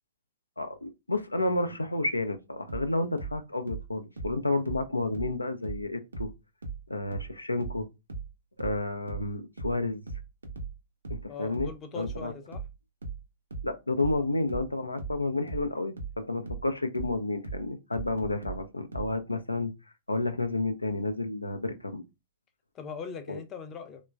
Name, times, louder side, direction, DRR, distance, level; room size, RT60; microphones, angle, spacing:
voice 1, 0.6-6.3 6.9-7.9 8.6-10.0 11.1-12.3 13.6-19.7 20.1-22.0 23.3-23.4, left 2 dB, 90° left, 0.3 m, -31 dB
sound 1, 2.7-5.9 6.1-19.2, right 4 dB, 75° right, 0.5 m, -39 dB
voice 2, 11.3-12.6 22.7-24.0, left 6 dB, 25° left, 0.5 m, -40 dB
3.0 x 2.2 x 2.3 m
figure-of-eight pair, 110°, 0 cm